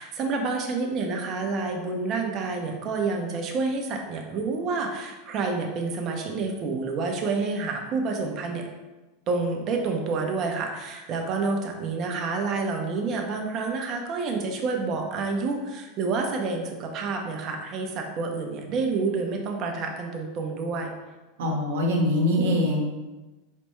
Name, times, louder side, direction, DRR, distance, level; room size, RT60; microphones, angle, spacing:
voice 1, 0.0-8.6 9.3-20.9, right 4 dB, 45° right, 2 dB, 0.8 m, -28 dB
voice 2, 21.4-22.8, left 1 dB, 75° right, -1 dB, 1.1 m, -23 dB
4.2 x 3.3 x 3.1 m, 1.1 s
hypercardioid pair, 110°, 0 cm